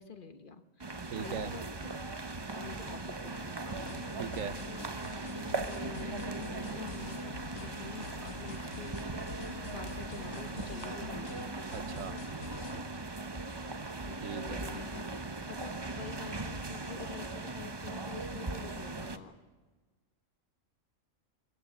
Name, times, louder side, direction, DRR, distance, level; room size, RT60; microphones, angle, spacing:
voice 1, 0.0-0.9 1.2-1.6 2.6-3.8 5.6-9.0 9.4-11.3 14.0-15.1 15.4-19.4, left 6 dB, 45° left, 9 dB, 1.1 m, -47 dB
sound 1, 0.8-19.2, right 3 dB, 20° right, 0.8 m, -39 dB
voice 2, 1.1-1.5 4.2-4.6 11.7-12.2 14.2-14.7, right 7 dB, 80° right, 13 dB, 1.3 m, -39 dB
sound 2, 3.8-12.8, left 8 dB, 75° left, 1.4 m, -47 dB
22.0 x 14.0 x 9.9 m, 1.4 s
omnidirectional pair, 1.3 m